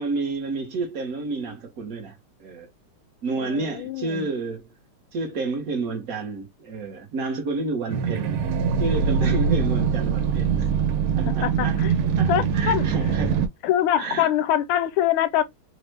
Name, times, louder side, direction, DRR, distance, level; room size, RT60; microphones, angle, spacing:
voice 1, 0.0-2.7 3.2-4.7 5.1-8.4 8.8-10.7 11.1-11.8 12.2-13.4 14.0-14.3, right 3 dB, 55° right, 1.0 m, -30 dB
voice 2, 3.4-4.3 11.1-11.9 12.3-12.9 13.6-15.4, left 11 dB, 80° left, 1.4 m, -24 dB
sound 1, 7.9-13.5, right 6 dB, 85° right, 1.5 m, -23 dB
3.4 x 2.0 x 3.2 m
omnidirectional pair, 2.3 m